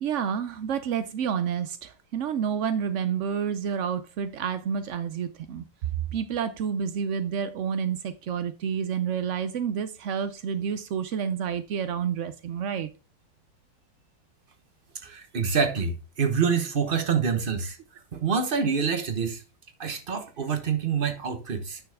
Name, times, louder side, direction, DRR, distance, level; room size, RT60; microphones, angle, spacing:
voice 1, 0.0-5.6 6.1-12.9, right 7 dB, 80° right, 0.6 m, -29 dB
voice 2, 15.0-17.8 18.1-19.4 19.8-21.8, right 6 dB, 35° right, 1.1 m, -26 dB
9.1 x 6.3 x 3.5 m
omnidirectional pair, 2.0 m